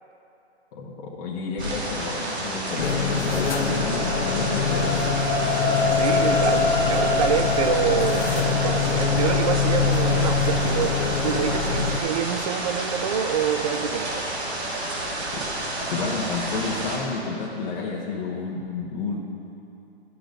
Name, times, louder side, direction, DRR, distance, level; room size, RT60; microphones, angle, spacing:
voice 1, 0.7-5.0 15.3-15.4 15.9-19.2, left 4 dB, 30° left, -4 dB, 1.1 m, -30 dB
sound 1, 1.6-17.0, right 1 dB, 75° right, 2.6 m, -30 dB
sound 2, 2.6-15.0 15.5-15.7, left 3 dB, 10° left, 2.2 m, -29 dB
sound 3, 2.8-12.0, left 5 dB, 85° left, 0.9 m, -25 dB
voice 2, 6.0-14.3, right 8 dB, 35° right, 8 dB, 0.5 m, -27 dB
12.0 x 6.3 x 5.2 m, 2.8 s
hypercardioid pair, 150°, 33 cm